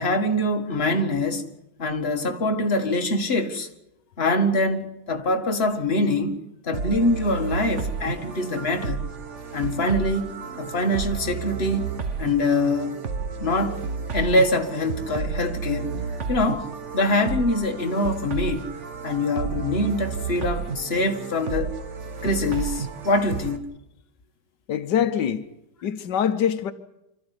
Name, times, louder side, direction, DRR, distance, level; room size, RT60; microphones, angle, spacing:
voice 1, 0.0-1.5 1.8-3.7 4.2-6.4 6.6-9.1 9.5-11.9 12.2-13.0 13.4-13.8 14.1-16.0 16.3-18.7 19.0-21.7 22.2-23.7, left 1 dB, 35° left, 1.9 m, -24 dB
sound 1, 6.7-23.6, right 5 dB, 45° right, 1.6 m, -32 dB
voice 2, 24.7-25.5 25.8-26.7, left 9 dB, 90° left, 1.6 m, -24 dB
26.0 x 13.5 x 9.8 m
omnidirectional pair, 1.8 m